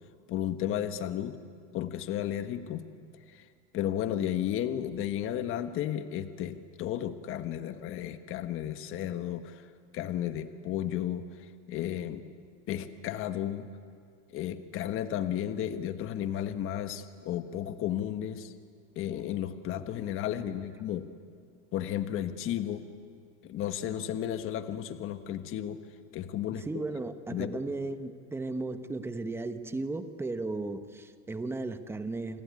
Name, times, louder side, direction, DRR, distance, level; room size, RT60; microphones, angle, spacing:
voice 1, 0.3-1.4 1.7-2.9 3.3-3.4 3.7-9.7 9.9-12.2 12.7-13.7 14.3-18.5 18.9-21.1 21.7-22.8 23.4-25.8 26.1-26.7 27.3-27.6, left 11 dB, 35° left, 10 dB, 1.4 m, -33 dB
voice 2, 26.6-32.4, right 3 dB, 5° right, 9 dB, 1.0 m, -35 dB
28.5 x 20.5 x 9.6 m, 2.3 s
supercardioid pair, 150°, 37 cm